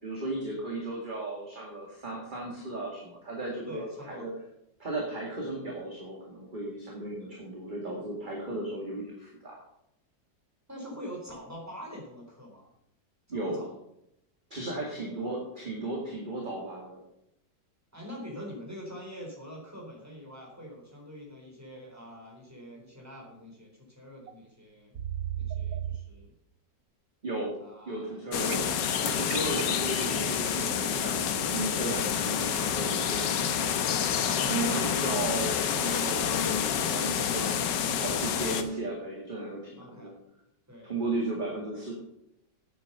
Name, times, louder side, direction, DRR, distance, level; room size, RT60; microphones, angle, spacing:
voice 1, 0.0-4.3 4.8-9.6 13.3-13.6 14.5-17.0 27.2-27.6 27.9-28.7 29.0-33.6 34.5-37.7 38.0-40.1 40.8-41.9, right 2 dB, 25° right, -2 dB, 2.1 m, -35 dB
voice 2, 3.7-4.3 10.7-12.7 13.3-13.7 14.9-15.3 17.9-25.0 25.3-26.3 27.6-28.4 39.8-40.1 40.7-41.1, equal, 10° right, -1 dB, 3.7 m, -45 dB
sound 1, 24.3-24.4 25.0-26.0 28.5-30.2, right 10 dB, 65° right, 1.0 m, -34 dB
sound 2, 28.3-38.6, left 8 dB, 75° left, 1.6 m, -28 dB
9.2 x 8.2 x 6.6 m, 0.80 s
omnidirectional pair, 1.9 m